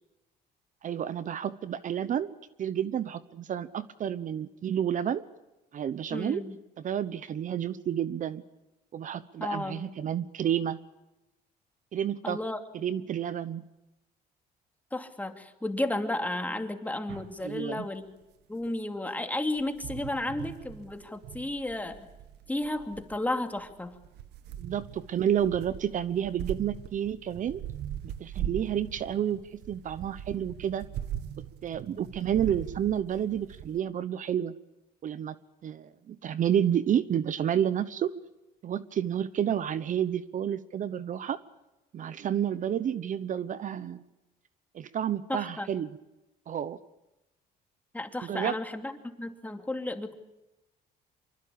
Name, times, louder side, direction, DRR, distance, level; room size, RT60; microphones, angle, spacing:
voice 1, 0.8-5.2 5.7-6.4 6.8-8.4 8.9-10.8 11.9-12.4 12.7-13.6 17.4-17.9 24.6-27.6 28.2-30.9 31.6-34.5 35.0-35.3 35.6-38.1 38.6-41.4 41.9-44.0 44.7-45.9 46.5-46.8 48.2-48.5, right 9 dB, 50° right, 15 dB, 1.0 m, -30 dB
voice 2, 6.1-6.5 9.4-9.9 12.2-12.6 14.9-18.1 18.5-22.1 22.5-23.9 45.3-45.7 47.9-48.9 49.2-50.1, left 1 dB, 10° left, 6 dB, 2.7 m, -33 dB
sound 1, 17.1-17.4 18.7-18.8 19.6-33.8, right 10 dB, 80° right, 1.6 m, -41 dB
25.5 x 24.0 x 8.7 m, 0.96 s
cardioid pair, 110°, 17 cm